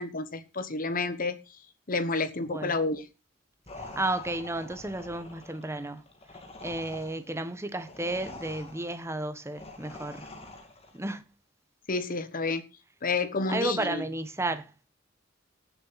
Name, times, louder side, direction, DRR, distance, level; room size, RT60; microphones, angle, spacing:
voice 1, 0.0-1.4 1.9-3.1 11.9-12.6 13.0-14.0, left 3 dB, 45° left, 1.3 m, -30 dB
voice 2, 2.4-2.8 3.8-6.0 6.6-10.3 10.9-11.2 13.5-14.7, right 2 dB, 15° right, 1.1 m, -33 dB
sound 1, 3.7-11.0, left 2 dB, 30° left, 2.3 m, -46 dB
18.0 x 7.1 x 4.1 m
head